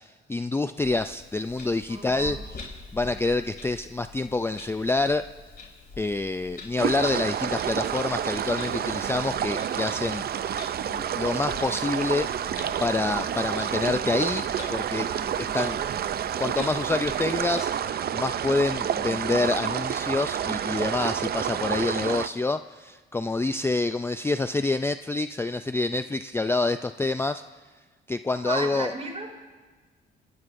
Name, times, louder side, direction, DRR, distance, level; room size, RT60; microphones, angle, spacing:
voice 1, 0.0-2.6 2.9-5.3 6.0-10.5 10.9-12.3 12.8-15.1 15.5-15.8 16.4-27.4 28.1-28.9, left 3 dB, 10° left, 9 dB, 0.4 m, -27 dB
Clock, 0.8-17.6, left 3 dB, 50° left, 4.8 m, -46 dB
voice 2, 1.9-2.4 15.1-15.6 28.4-29.3, right 3 dB, 35° right, 0 dB, 3.8 m, -35 dB
sound 1, 6.8-22.3, right 9 dB, 50° right, 0.6 m, -29 dB
27.5 x 19.0 x 2.6 m, 1.3 s
cardioid pair, 90°, 20 cm